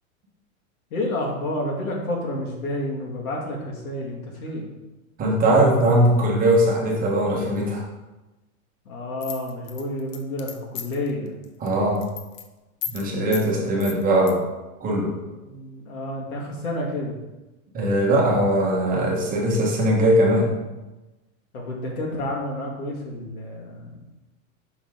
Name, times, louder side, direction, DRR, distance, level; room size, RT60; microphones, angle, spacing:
voice 1, 0.9-4.7 8.9-11.4 13.0-13.8 15.5-17.2 21.5-24.0, left 1 dB, 90° left, -1 dB, 2.1 m, -30 dB
voice 2, 5.2-7.8 11.6-12.0 12.9-14.4 14.8-15.2 17.7-20.5, right 1 dB, 20° right, -3 dB, 1.3 m, -20 dB
sound 1, 9.2-11.1 11.4-11.7 11.9-12.4 12.8-13.0 13.3-13.5 13.8-14.3, left 9 dB, 60° left, 0.9 m, -34 dB
5.8 x 5.6 x 3.7 m, 1.1 s
supercardioid pair, 150°, 42 cm